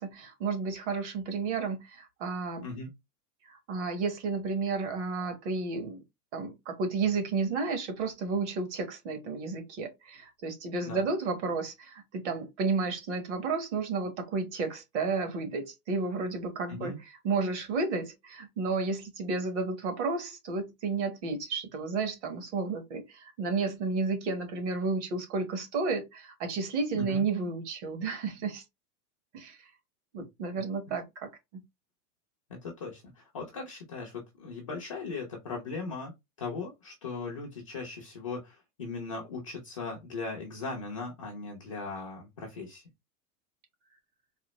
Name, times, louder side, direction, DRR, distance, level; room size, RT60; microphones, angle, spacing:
voice 1, 0.0-2.7 3.4-6.0 6.3-17.0 17.2-28.6 29.3-29.6 30.1-31.3, right 4 dB, 45° right, 1.4 m, -32 dB
voice 2, 32.5-36.1 36.4-42.8, left 3 dB, 25° left, 0.4 m, -38 dB
4.1 x 2.7 x 3.0 m
supercardioid pair, 175°, 47 cm